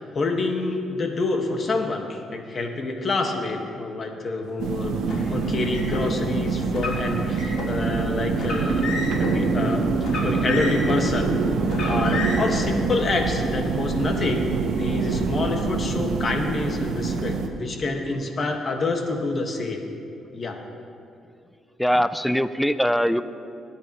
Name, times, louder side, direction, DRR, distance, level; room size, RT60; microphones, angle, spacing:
voice 1, 0.0-8.9 9.2-9.9 10.2-11.3 11.8-19.8 20.3-20.6, left 3 dB, 45° left, 3 dB, 1.7 m, -27 dB
sound 1, 4.6-17.5, right 4 dB, 80° right, 1.2 m, -25 dB
Car, 5.0-6.0 6.7-7.7 8.3-9.3 10.0-11.1 11.6-12.6, left 3 dB, 65° left, 3.7 m, -31 dB
voice 2, 21.8-23.2, equal, ahead, 13 dB, 0.5 m, -21 dB
22.0 x 10.5 x 3.1 m, 2.5 s
cardioid pair, 90°, 0 cm